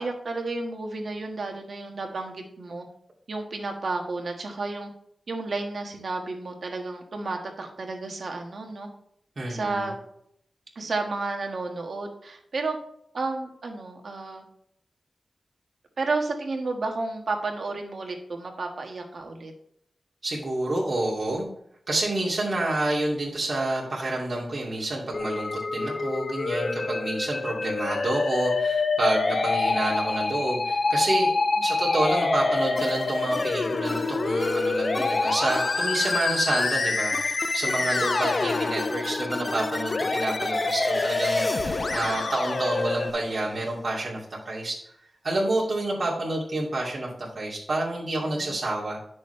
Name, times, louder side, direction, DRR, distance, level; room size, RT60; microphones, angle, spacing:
voice 1, 0.0-2.8 3.3-4.9 5.3-8.9 9.5-9.9 10.7-12.8 13.1-14.4 16.0-19.5 31.6-31.9 37.7-38.0 48.2-48.6, right 3 dB, 70° right, 3 dB, 1.6 m, -32 dB
voice 2, 9.4-9.8 20.2-21.5 21.9-31.3 31.6-44.2 44.5-44.8 45.2-47.1 47.3-49.0, right 2 dB, 45° right, -5 dB, 2.5 m, -28 dB
Musical instrument, 25.1-43.1, left 3 dB, 55° left, 0.7 m, -26 dB
sound 1, 32.8-43.1, left 1 dB, 20° left, 0.4 m, -37 dB
10.5 x 6.4 x 3.3 m, 0.71 s
wide cardioid pair, 90°, 0 cm